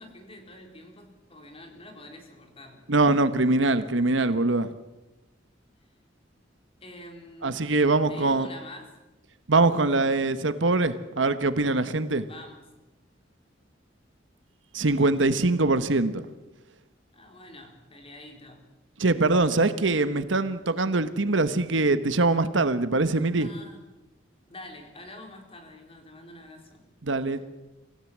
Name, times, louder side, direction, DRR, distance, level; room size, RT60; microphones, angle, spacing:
voice 1, 0.0-2.9 6.8-7.6 8.1-8.9 12.2-12.6 17.1-18.7 23.4-23.9 24.5-26.9 27.3-27.5, left 1 dB, 30° left, 3 dB, 4.1 m, -46 dB
voice 2, 2.9-4.7 7.4-8.5 9.5-12.3 14.7-16.3 19.0-23.5 27.0-27.4, right 2 dB, 75° right, 12 dB, 1.2 m, -23 dB
25.5 x 16.0 x 7.5 m, 1.1 s
head